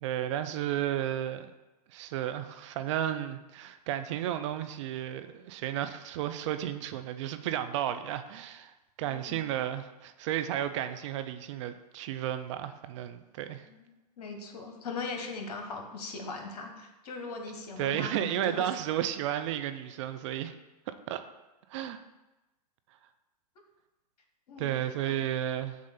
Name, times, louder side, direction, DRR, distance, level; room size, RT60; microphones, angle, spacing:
voice 1, 0.0-1.5 1.9-8.7 9.0-13.6 17.8-20.5 20.9-21.2 21.7-22.0 24.6-25.8, right 11 dB, 45° right, 10 dB, 0.4 m, -33 dB
voice 2, 9.1-9.5 13.8-13.9 14.2-18.6 24.5-24.7 25.1-25.2, left 3 dB, 65° left, 4 dB, 1.1 m, -39 dB
7.4 x 2.5 x 5.6 m, 1.1 s
hypercardioid pair, 110°, 21 cm